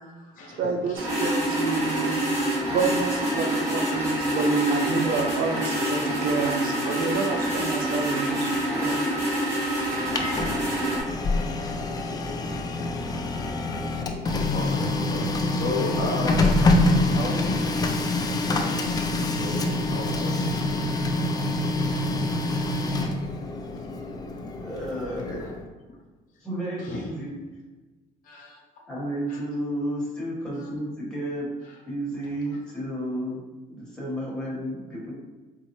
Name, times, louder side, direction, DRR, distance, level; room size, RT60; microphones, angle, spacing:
voice 1, 0.0-1.0 6.0-6.2 6.8-7.0 11.3-11.6 14.3-16.6 17.0-17.7 18.5-19.0 19.4-20.9 21.2-21.3 25.4-25.5 26.8-27.1 28.2-28.6 29.3-29.4 30.5-30.7 31.6-31.8, left 2 dB, 55° left, -1 dB, 0.7 m, -35 dB
voice 2, 0.6-2.2 2.7-8.6 9.9-10.2, right 4 dB, 60° right, 2 dB, 0.4 m, -28 dB
sound 1, 1.0-11.0, right 1 dB, 20° right, 1.3 m, -26 dB
voice 3, 8.7-9.1 24.6-25.4 26.4-27.3 28.9-31.5 31.8-33.4 33.7-35.1, right 1 dB, 5° left, -7 dB, 1.2 m, -32 dB
Printer, 9.8-25.6, left 2 dB, 25° left, 0.3 m, -26 dB
3.9 x 2.0 x 3.0 m, 1.2 s
cardioid pair, 110°, 17 cm